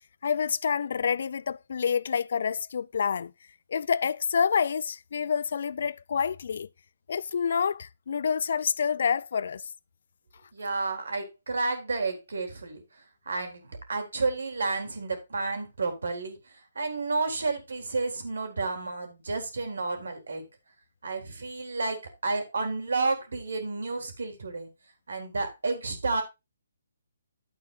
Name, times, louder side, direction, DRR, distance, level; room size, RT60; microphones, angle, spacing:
voice 1, 0.2-3.3 3.7-6.7 7.1-9.6, left 6 dB, 55° left, 0.5 m, -28 dB
voice 2, 10.5-12.8 13.3-16.4 16.8-20.5 21.0-24.7 25.1-26.2, right 3 dB, 70° right, 3.9 m, -31 dB
12.0 x 8.4 x 2.5 m
figure-of-eight pair, 140°, 0 cm